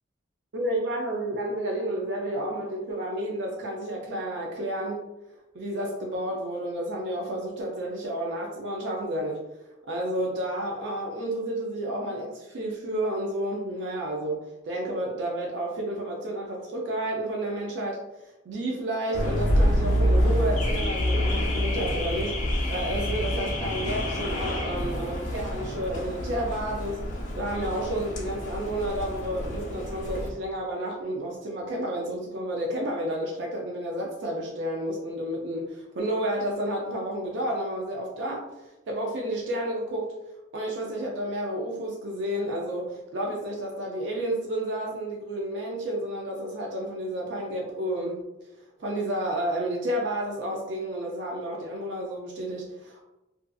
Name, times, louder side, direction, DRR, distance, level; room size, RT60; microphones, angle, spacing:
voice 1, 0.5-5.1 5.5-9.4 9.9-18.0 18.5-38.5 38.9-40.1 40.5-48.2 48.8-53.0, right 1 dB, 65° right, -1 dB, 0.4 m, -31 dB
Car / Alarm, 19.1-30.3, equal, 40° left, 0.5 m, -27 dB
2.5 x 2.4 x 2.2 m, 0.98 s
head